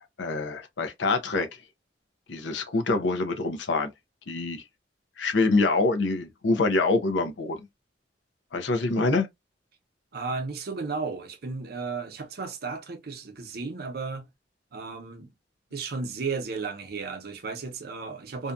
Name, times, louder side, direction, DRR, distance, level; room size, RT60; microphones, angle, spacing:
voice 1, 0.2-1.5 2.3-3.9 4.3-4.6 5.2-7.6 8.5-9.3, left 3 dB, 85° left, 0.6 m, -25 dB
voice 2, 10.1-14.3 14.7-15.3 15.7-18.5, right 4 dB, 60° right, 0.7 m, -34 dB
2.7 x 2.2 x 2.4 m
head